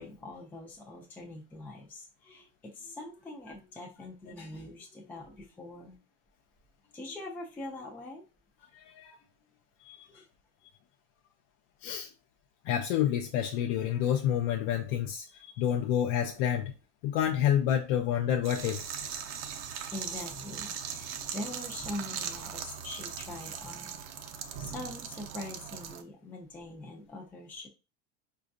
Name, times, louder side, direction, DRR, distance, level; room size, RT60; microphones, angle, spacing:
voice 1, 0.0-6.0 6.9-8.2 10.1-10.3 19.9-24.0 24.3-27.7, left 2 dB, 5° left, 0.4 m, -43 dB
voice 2, 12.7-15.2 15.6-16.7 17.0-18.8, left 10 dB, 55° left, 0.5 m, -28 dB
sound 1, 18.4-26.0, right 8 dB, 55° right, 0.6 m, -39 dB
4.9 x 2.3 x 2.5 m
supercardioid pair, 150°, 34 cm